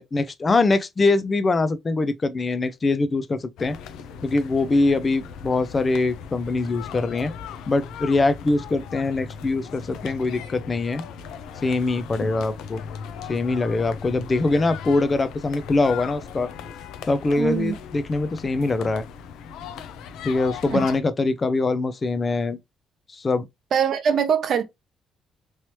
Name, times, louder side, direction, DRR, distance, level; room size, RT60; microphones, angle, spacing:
voice 1, 0.0-3.8 4.2-7.3 7.7-11.0 11.6-12.8 13.3-16.5 17.1-19.0 20.2-22.6 23.1-23.5, left 3 dB, 35° left, 0.4 m, -23 dB
sound 1, 3.6-21.0, left 7 dB, 90° left, 0.5 m, -38 dB
voice 2, 17.4-17.7 20.7-20.8 23.7-24.6, right 7 dB, 60° right, 0.7 m, -22 dB
3.1 x 2.9 x 3.0 m
cardioid pair, 90°, 0 cm